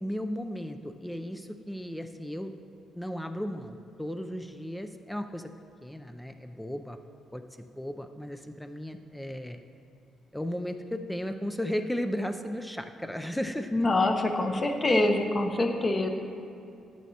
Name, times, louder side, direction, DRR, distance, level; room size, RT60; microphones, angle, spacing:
voice 1, 0.0-2.5 2.9-5.5 5.8-7.0 7.3-9.6 10.3-13.7, equal, 5° left, 6 dB, 0.4 m, -35 dB
voice 2, 13.7-16.1, left 2 dB, 30° left, 4 dB, 0.9 m, -25 dB
10.5 x 9.2 x 2.8 m, 2.7 s
cardioid pair, 90°, 0 cm